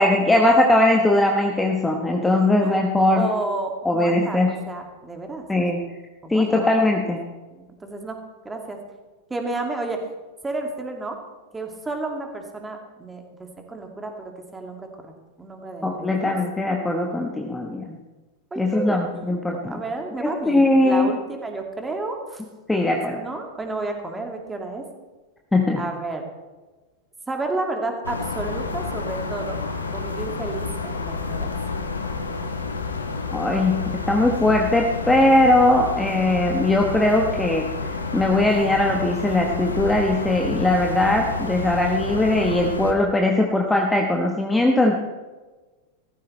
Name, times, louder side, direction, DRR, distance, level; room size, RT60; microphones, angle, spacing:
voice 1, 0.0-3.3 3.8-4.5 5.5-5.8 6.3-7.2 15.8-18.0 18.6-19.8 20.2-21.1 22.7-23.2 25.5-25.8 33.3-37.7 38.1-45.0, left 1 dB, 10° left, 1 dB, 1.2 m, -20 dB
voice 2, 3.1-5.8 6.2-6.7 7.5-8.2 8.4-8.8 9.3-10.0 10.4-11.2 11.5-15.1 15.4-16.3 18.5-22.4 22.8-24.8 25.8-26.2 27.3-29.6 29.9-31.5, right 2 dB, 10° right, 3 dB, 2.3 m, -31 dB
sound 1, 28.0-42.9, left 4 dB, 75° left, 1.3 m, -29 dB
16.5 x 14.0 x 3.3 m, 1.2 s
figure-of-eight pair, 90°, 0 cm